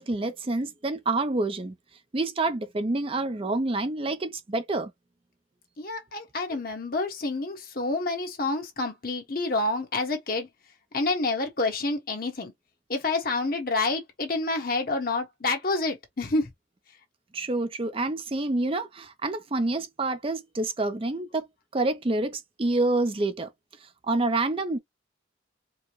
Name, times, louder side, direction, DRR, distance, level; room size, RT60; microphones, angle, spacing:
voice 1, 0.0-1.7 2.1-4.9 6.5-6.6 17.3-21.5 21.7-23.5 24.1-24.8, right 2 dB, 30° right, 0.5 m, -27 dB
voice 2, 5.8-10.5 10.9-12.5 12.9-16.5, left 3 dB, 50° left, 1.1 m, -28 dB
4.5 x 2.1 x 3.0 m
head